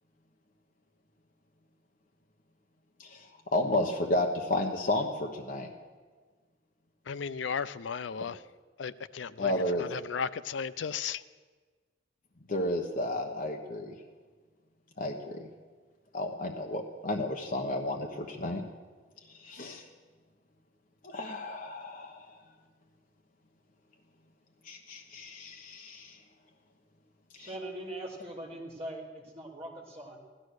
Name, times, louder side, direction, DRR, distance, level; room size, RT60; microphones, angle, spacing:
voice 1, 3.0-5.7 9.4-9.9 12.5-13.9 15.0-15.5 16.1-18.6 19.3-19.8 21.0-22.4 24.6-26.2 27.4-27.5, left 1 dB, 45° left, 2 dB, 1.1 m, -32 dB
voice 2, 7.1-8.4 8.8-11.2, left 6 dB, 75° left, 15 dB, 0.5 m, -35 dB
voice 3, 27.3-30.2, right 1 dB, 30° right, -1 dB, 3.1 m, -41 dB
16.0 x 12.5 x 6.5 m, 1.4 s
head